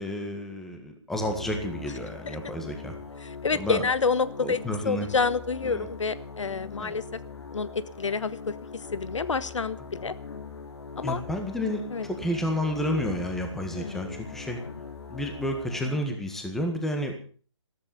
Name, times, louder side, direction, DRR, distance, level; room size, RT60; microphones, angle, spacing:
voice 1, 0.0-3.0 3.5-3.8 4.4-5.1 5.6-5.9 6.8-7.0 10.0-10.1 11.0-14.6 15.1-17.1, equal, ahead, 4 dB, 1.7 m, -31 dB
sound 1, 1.2-16.1, left 5 dB, 60° left, 3.9 m, -42 dB
voice 2, 3.2-4.6 4.8-7.2 7.5-10.1 11.0-11.2 11.9-12.1 13.8-14.1, left 4 dB, 80° left, 16 dB, 1.4 m, -28 dB
14.5 x 14.0 x 6.9 m, 0.42 s
hypercardioid pair, 165°, 15 cm